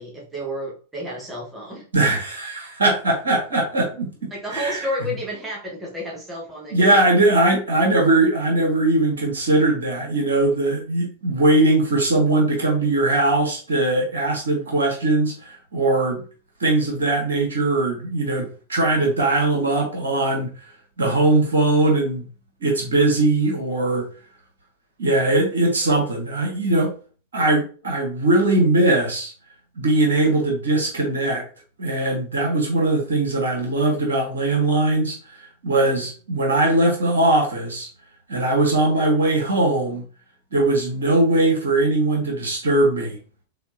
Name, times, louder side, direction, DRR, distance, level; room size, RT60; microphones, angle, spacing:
voice 1, 0.0-1.9 4.3-7.0, equal, 10° right, -4 dB, 1.8 m, -31 dB
voice 2, 1.9-4.8 6.7-16.2 16.6-20.7 21.0-22.3 22.6-24.0 25.0-26.9 27.3-29.3 29.7-31.4 31.8-37.9 38.3-40.0 40.5-43.2, right 2 dB, 70° right, -1 dB, 1.7 m, -20 dB
4.9 x 4.1 x 2.6 m, 0.38 s
figure-of-eight pair, 90°, 0 cm